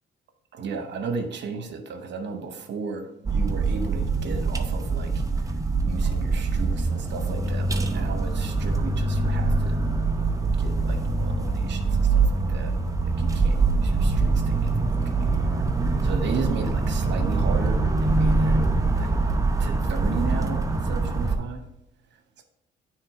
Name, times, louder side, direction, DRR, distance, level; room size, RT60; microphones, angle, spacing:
voice 1, 0.5-5.5 5.8-9.8 10.6-12.7 13.0-15.6 16.0-18.6 18.9-19.2 19.6-21.6 22.4-22.5, right 5 dB, 65° right, 6 dB, 1.0 m, -35 dB
sound 1, 3.3-21.4, right 3 dB, 15° right, 0.7 m, -24 dB
8.9 x 3.4 x 4.7 m, 0.79 s
cardioid pair, 90°, 20 cm